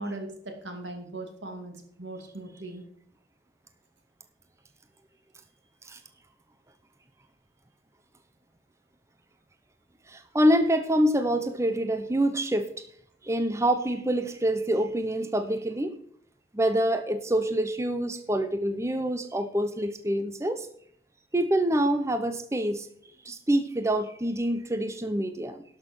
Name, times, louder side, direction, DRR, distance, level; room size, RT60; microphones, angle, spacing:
voice 1, 0.0-2.9, right 2 dB, 80° right, 4 dB, 2.5 m, -39 dB
voice 2, 10.1-12.7 13.2-15.9 16.5-20.7 21.3-22.9 23.2-25.6, right 1 dB, 15° right, 9 dB, 0.7 m, -26 dB
11.5 x 6.6 x 6.1 m, 0.63 s
head